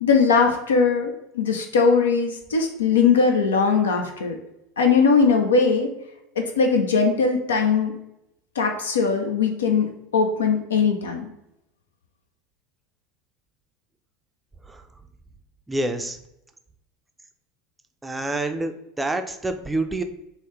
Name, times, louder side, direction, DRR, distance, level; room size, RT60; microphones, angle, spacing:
voice 1, 0.0-4.4 4.8-5.9 6.4-7.9 8.6-9.9 10.1-11.3, left 5 dB, 75° left, 4 dB, 0.4 m, -20 dB
voice 2, 15.7-16.2 18.0-20.0, right 2 dB, 10° right, 6 dB, 0.4 m, -27 dB
3.8 x 2.1 x 3.1 m, 0.84 s
figure-of-eight pair, 75°, 0 cm